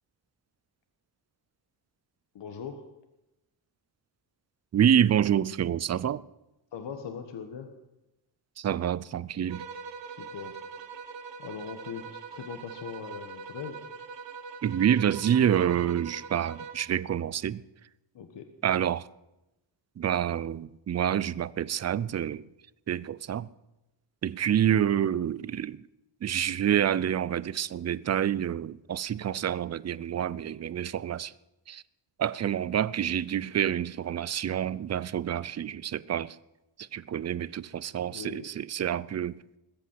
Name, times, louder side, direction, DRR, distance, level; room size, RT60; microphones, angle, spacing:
voice 1, 2.3-2.8 6.7-7.7 10.1-10.6 11.4-13.8 18.1-18.5 38.0-38.5, left 7 dB, 70° left, 1.5 m, -40 dB
voice 2, 4.7-6.2 8.6-9.6 14.6-17.6 18.6-19.1 20.0-22.4 22.9-23.5 24.2-25.8 26.2-31.3 31.7-31.8 32.2-36.4 36.8-39.4, right 9 dB, 40° right, 0.4 m, -27 dB
sound 1, 9.5-16.9, right 5 dB, 75° right, 1.4 m, -43 dB
20.5 x 8.4 x 7.7 m
wide cardioid pair, 135°, 44 cm